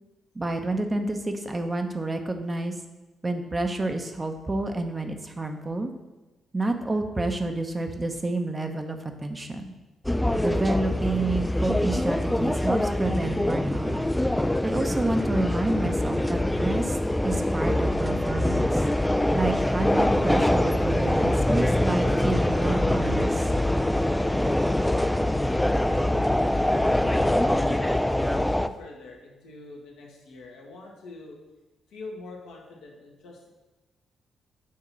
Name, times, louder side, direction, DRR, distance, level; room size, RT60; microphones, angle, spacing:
voice 1, 0.3-2.7 3.2-5.9 6.5-9.7 10.4-14.0 14.6-17.0 17.2-18.8 19.3-23.5, right 2 dB, 30° right, 5 dB, 0.8 m, -29 dB
sound 1, 10.0-28.7, left 1 dB, 10° left, 0.4 m, -24 dB
voice 2, 27.6-31.4 31.9-33.5, left 3 dB, 80° left, -2 dB, 1.4 m, -44 dB
7.4 x 2.9 x 6.0 m, 1.1 s
supercardioid pair, 50°, 0 cm